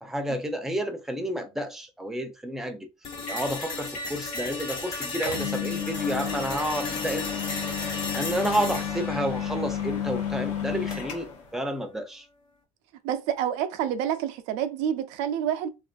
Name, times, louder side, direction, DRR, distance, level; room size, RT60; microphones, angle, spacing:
voice 1, 0.0-2.9 3.3-7.3 8.1-12.3, right 1 dB, 5° right, 0.4 m, -30 dB
sound 1, 3.0-11.1, left 3 dB, 40° left, 1.1 m, -36 dB
sound 2, 3.3-3.5 3.9-4.5 4.9-5.0 5.2-11.5, left 8 dB, 75° left, 0.6 m, -32 dB
voice 2, 13.0-15.7, right 9 dB, 80° right, 0.4 m, -28 dB
2.4 x 2.4 x 2.2 m
cardioid pair, 115°, 12 cm